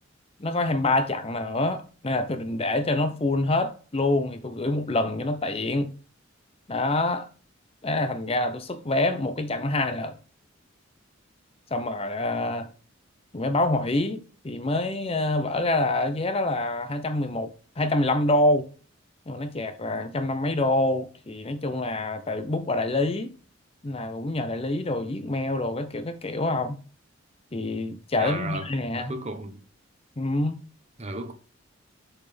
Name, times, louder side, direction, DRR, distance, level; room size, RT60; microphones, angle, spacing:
voice 1, 0.4-5.9 6.7-7.3 7.8-10.2 11.7-12.7 13.3-18.7 19.3-23.3 23.8-26.8 27.5-29.2 30.2-30.6, left 2 dB, 30° left, 0.7 m, -26 dB
voice 2, 28.2-28.7 28.9-29.6 31.0-31.3, right 2 dB, 30° right, 0.9 m, -34 dB
6.8 x 5.8 x 3.4 m
head